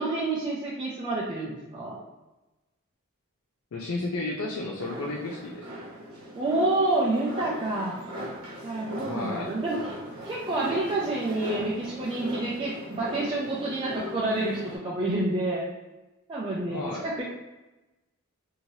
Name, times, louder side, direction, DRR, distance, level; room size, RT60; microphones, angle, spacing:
voice 1, 0.0-2.0 6.3-8.0 8.6-9.9 10.2-15.6 16.3-17.2, right 2 dB, 25° right, -6 dB, 0.5 m, -28 dB
voice 2, 3.7-5.8 9.0-9.5 16.7-17.1, left 2 dB, 70° left, -1 dB, 0.4 m, -33 dB
sound 1, 4.8-14.8, right 1 dB, 70° right, 0.9 m, -39 dB
3.0 x 2.7 x 2.7 m, 1.1 s
head